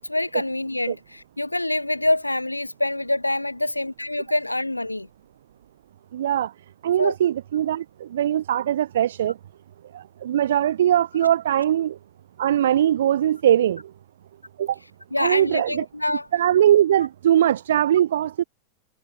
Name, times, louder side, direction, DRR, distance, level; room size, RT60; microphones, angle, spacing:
voice 1, 0.1-5.1 7.0-7.1 15.1-16.3, left 1 dB, 85° left, 1.2 m, -25 dB
voice 2, 6.1-6.5 6.8-9.4 9.9-12.0 12.4-13.8 14.6-14.8 15.2-15.8 16.3-18.4, right 11 dB, 60° right, 0.7 m, -21 dB
figure-of-eight pair, 90°, 0 cm